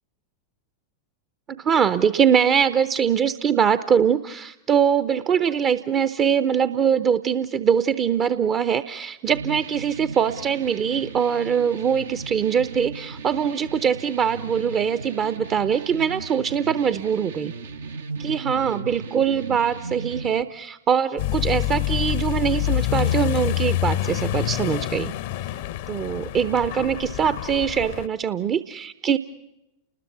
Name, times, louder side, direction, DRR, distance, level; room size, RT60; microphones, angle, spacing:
voice 1, 1.5-17.5 18.2-25.1 25.9-29.2, right 7 dB, 30° right, 14 dB, 0.8 m, -22 dB
sound 1, 9.3-20.4, right 4 dB, 65° right, 1.0 m, -37 dB
Accelerating revving vroom, 21.2-28.1, left 15 dB, 55° left, 0.8 m, -26 dB
29.5 x 20.5 x 7.2 m, 0.93 s
figure-of-eight pair, 90°, 0 cm